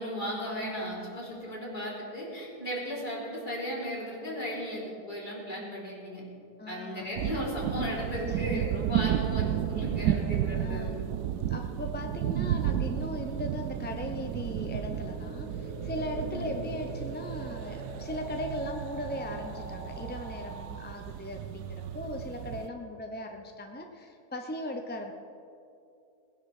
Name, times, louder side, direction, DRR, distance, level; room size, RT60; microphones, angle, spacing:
voice 1, 0.0-6.2 6.7-11.1 16.2-16.6, equal, 30° left, -6 dB, 3.8 m, -36 dB
voice 2, 6.6-7.1 8.3-8.6 10.5-11.0 11.5-25.1, left 1 dB, 10° left, 3 dB, 0.4 m, -38 dB
sound 1, 7.2-22.7, right 10 dB, 90° right, 1.1 m, -33 dB
sound 2, 13.6-20.8, right 1 dB, 65° right, 3.8 m, -45 dB
19.0 x 10.5 x 4.9 m, 2.6 s
omnidirectional pair, 1.6 m